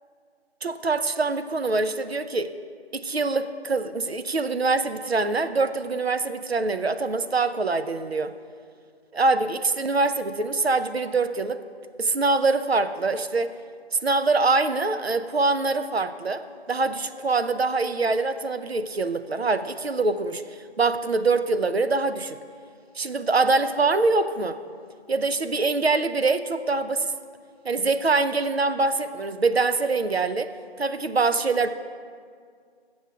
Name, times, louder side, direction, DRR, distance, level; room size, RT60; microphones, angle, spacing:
voice 1, 0.6-2.5 2.9-8.3 9.1-11.6 12.0-13.5 13.9-16.4 16.7-20.4 20.8-22.4 23.0-24.6 25.1-27.1 27.6-30.5 30.8-31.7, right 3 dB, 70° right, 10 dB, 0.5 m, -24 dB
7.1 x 6.1 x 7.5 m, 2.1 s
figure-of-eight pair, 180°, 33 cm